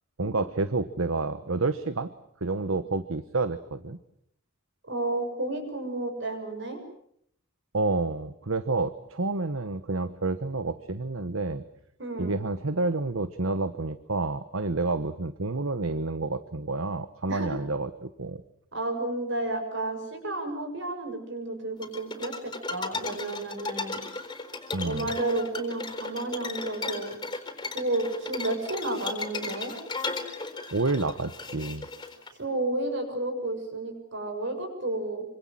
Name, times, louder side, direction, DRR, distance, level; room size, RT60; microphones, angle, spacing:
voice 1, 0.2-2.1 2.4-4.0 7.7-11.6 12.2-18.4 24.7-25.0 30.7-31.8, right 3 dB, 75° right, 13 dB, 1.1 m, -29 dB
voice 2, 4.8-6.8 12.0-12.4 17.3-17.6 18.7-24.0 24.8-27.2 27.7-29.7 32.3-35.2, right 2 dB, 60° right, 7 dB, 6.6 m, -31 dB
sound 1, 21.8-32.3, left 3 dB, 20° left, 4.1 m, -36 dB
26.0 x 25.5 x 7.6 m, 0.71 s
head